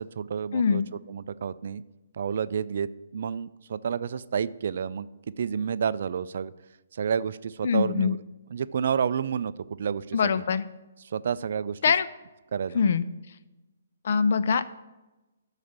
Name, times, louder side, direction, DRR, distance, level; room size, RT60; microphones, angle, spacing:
voice 1, 0.0-0.8 1.1-1.8 2.1-5.1 5.4-6.5 6.9-8.2 8.5-10.4 11.0-11.8 12.5-12.8, right 7 dB, 55° right, 15 dB, 0.4 m, -30 dB
voice 2, 0.5-0.9 7.6-8.2 10.1-10.7 11.8-12.0 12.7-13.0 14.0-14.6, left 6 dB, 55° left, 12 dB, 0.6 m, -23 dB
12.0 x 4.1 x 7.1 m, 1.1 s
figure-of-eight pair, 135°, 0 cm